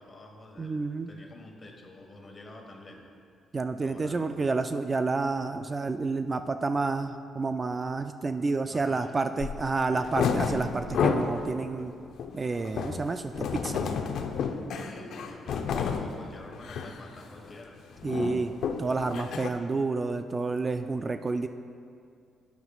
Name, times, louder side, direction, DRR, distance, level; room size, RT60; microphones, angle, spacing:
voice 1, 0.0-3.1 3.8-4.5 8.7-9.4 9.9-10.3 14.7-17.8, left 2 dB, 35° left, 2 dB, 1.4 m, -47 dB
voice 2, 0.6-1.1 3.5-11.9 12.3-13.9 18.0-18.5 18.8-21.5, right 3 dB, 30° right, 8 dB, 0.3 m, -29 dB
sound 1, 9.4-9.6 10.0-11.4 11.8-16.1 16.5-17.0 17.3-17.5 17.8-19.5, left 6 dB, 75° left, 0.6 m, -30 dB
13.5 x 9.4 x 2.4 m, 2.3 s
cardioid pair, 90°, 0 cm